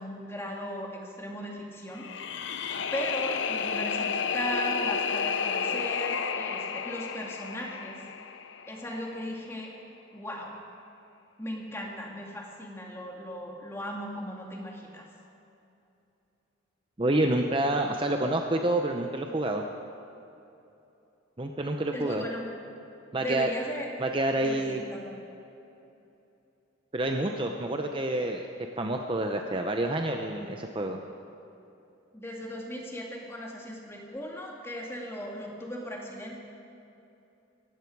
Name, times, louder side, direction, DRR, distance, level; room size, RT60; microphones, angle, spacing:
voice 1, 0.0-2.1 2.4-2.6 2.9-8.0 8.7-9.7 10.1-10.6 11.4-15.1 21.9-22.5 23.2-23.9 24.4-25.2 32.1-36.4, equal, 15° left, -1 dB, 2.1 m, -37 dB
sound 1, 1.9-9.0, left 6 dB, 65° left, 0.7 m, -31 dB
voice 2, 17.0-19.6 21.4-22.2 23.1-23.5 24.0-24.8 26.9-28.5 28.8-31.0, right 1 dB, 25° right, 3 dB, 0.7 m, -28 dB
18.0 x 15.0 x 4.7 m, 2.8 s
head